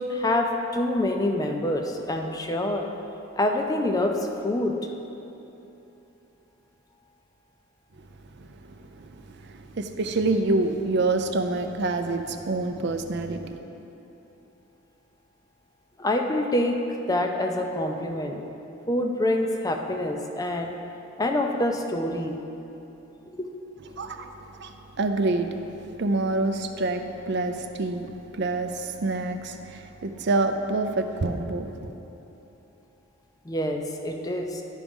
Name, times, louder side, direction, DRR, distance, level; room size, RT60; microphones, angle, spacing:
voice 1, 0.1-2.9 3.4-4.1 4.4-4.7 16.0-16.8 17.1-18.4 18.9-20.8 21.2-22.4 23.4-23.5 33.5-34.6, left 1 dB, 20° left, 3 dB, 0.5 m, -26 dB
voice 2, 8.3-13.6 23.9-25.6 26.0-31.9, right 2 dB, 55° right, 7 dB, 0.5 m, -27 dB
11.0 x 4.9 x 5.3 m, 3.0 s
head